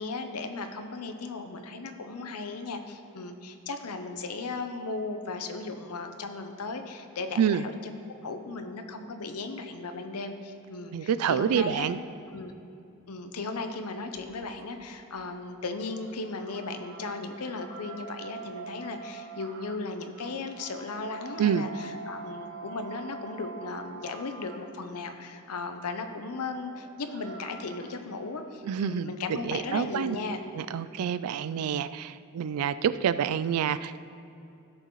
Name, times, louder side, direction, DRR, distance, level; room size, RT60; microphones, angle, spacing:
voice 1, 0.0-7.9 8.2-11.9 12.3-12.5 13.1-30.4, left 3 dB, 90° left, 7 dB, 0.8 m, -36 dB
voice 2, 10.9-12.0 21.4-21.7 28.6-30.2 30.6-34.1, right 8 dB, 80° right, 15 dB, 0.3 m, -27 dB
sound 1, 14.1-25.1 26.6-27.9, right 4 dB, 60° right, 0.8 m, -45 dB
15.0 x 6.7 x 3.1 m, 2.7 s
head